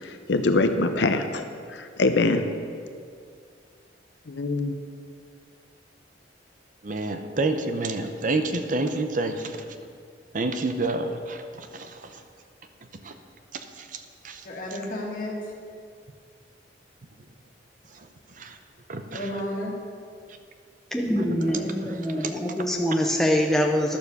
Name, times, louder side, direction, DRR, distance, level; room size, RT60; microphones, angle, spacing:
voice 1, 0.0-1.5 1.7-2.4 4.3-4.7, left 2 dB, 80° left, 7 dB, 0.7 m, -23 dB
voice 2, 6.8-9.7 10.3-12.2 13.0-13.2 13.5-14.4 18.4-18.6 18.9-19.3 21.2-21.5 21.8-22.3, right 2 dB, 45° right, 7 dB, 0.7 m, -29 dB
voice 3, 14.4-15.3 19.1-19.7 21.1-21.8, left 1 dB, 50° left, -3 dB, 2.3 m, -32 dB
voice 4, 20.9-24.0, equal, ahead, 1 dB, 0.7 m, -24 dB
11.5 x 7.2 x 6.6 m, 2.2 s
head